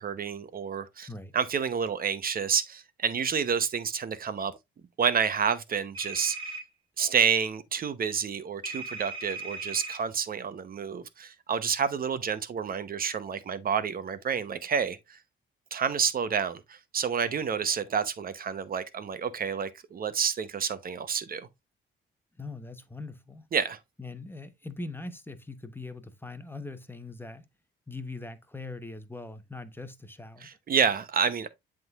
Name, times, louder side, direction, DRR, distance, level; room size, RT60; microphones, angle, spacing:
voice 1, 0.0-1.1 1.3-4.5 5.0-6.6 7.0-15.2 15.7-21.5 23.5-23.8 30.4-31.5, right 7 dB, 45° right, 0.8 m, -29 dB
sound 1, 5.9-6.6 8.6-10.0, right 3 dB, 25° right, 2.6 m, -37 dB
voice 2, 22.4-23.4 24.0-27.4 27.9-30.5, left 3 dB, 10° left, 0.9 m, -41 dB
10.5 x 3.8 x 2.4 m
cardioid pair, 90°, 20 cm